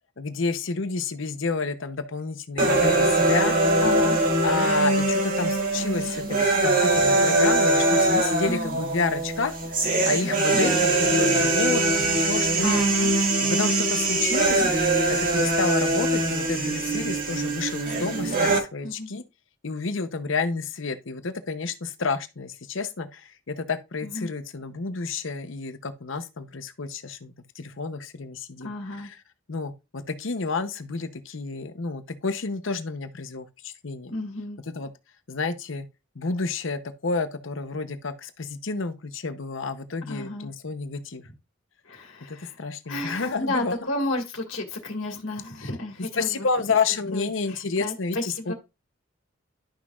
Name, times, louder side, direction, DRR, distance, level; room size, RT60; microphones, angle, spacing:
voice 1, 0.2-3.6 4.4-12.8 13.4-14.7 15.1-19.2 19.6-29.2 29.5-34.1 34.7-34.9 35.3-35.8 36.2-41.2 42.3-43.7 45.6-45.7 46.2-48.5, left 4 dB, 70° left, 0.8 m, -30 dB
sound 1, 2.6-18.6, right 2 dB, 40° right, 2.0 m, -22 dB
voice 2, 3.8-4.2 8.5-8.8 12.6-13.1 18.8-19.1 24.0-24.3 28.6-29.1 34.1-34.6 40.1-40.5 41.9-42.6 42.9-46.5 47.1-48.5, left 2 dB, 85° left, 1.9 m, -32 dB
11.5 x 6.1 x 2.4 m
head